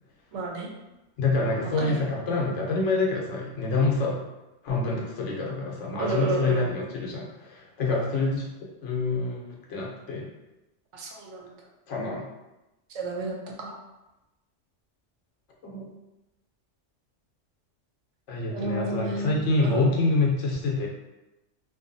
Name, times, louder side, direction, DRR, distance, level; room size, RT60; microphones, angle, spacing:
voice 1, 0.3-0.7 1.8-2.1 6.0-6.7 7.9-8.0 10.9-11.5 12.9-13.8 18.5-19.9, right 2 dB, 80° right, -1 dB, 0.9 m, -31 dB
voice 2, 1.2-4.2 4.6-8.5 8.8-10.3 11.9-12.3 15.6-15.9 18.3-20.9, left 3 dB, 80° left, -2 dB, 1.0 m, -26 dB
2.6 x 2.3 x 2.5 m, 0.98 s
omnidirectional pair, 1.2 m